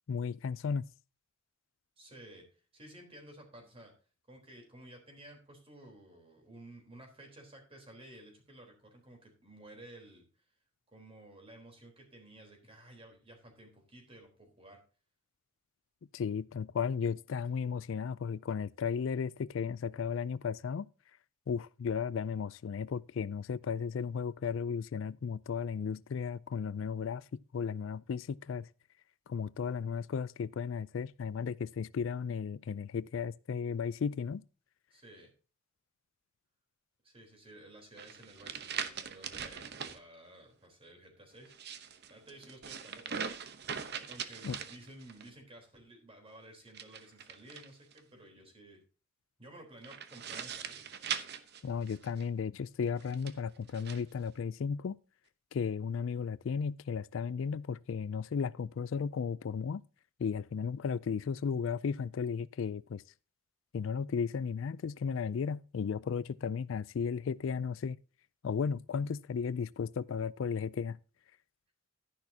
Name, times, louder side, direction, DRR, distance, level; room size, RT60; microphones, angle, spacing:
voice 1, 0.1-0.8 16.1-20.9 21.5-27.2 27.5-28.7 29.3-34.4 44.4-44.6 51.6-55.0 55.5-59.8 60.2-63.0 63.7-68.0 68.4-71.0, left 6 dB, 70° left, 0.4 m, -35 dB
voice 2, 2.0-2.4 2.7-3.9 4.3-10.2 10.9-14.8 34.9-35.3 37.0-41.5 42.1-43.5 44.1-48.8 49.4-50.9, right 1 dB, 30° right, 3.8 m, -54 dB
sound 1, 38.0-40.0 41.4-45.3 46.7-48.0 49.8-52.3 53.0-54.0, right 7 dB, 55° right, 0.9 m, -41 dB
12.0 x 10.5 x 2.8 m
head